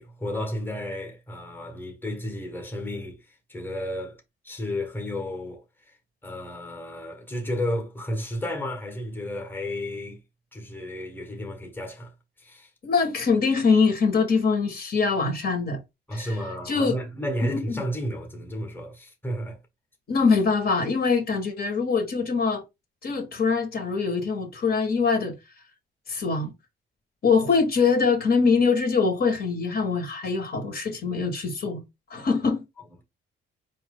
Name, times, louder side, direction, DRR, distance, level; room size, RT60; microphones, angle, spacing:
voice 1, 0.0-4.2 4.4-6.0 6.2-10.2 10.5-12.1 12.4-12.7 16.1-19.6, left 1 dB, 10° left, 1.4 m, -32 dB
voice 2, 12.8-15.8 16.1-16.3 16.7-17.0 20.1-22.6 23.0-25.3 26.1-26.5 27.2-31.8 32.1-32.6, left 5 dB, 50° left, 1.8 m, -23 dB
4.3 x 2.8 x 3.8 m
cardioid pair, 90°, 20 cm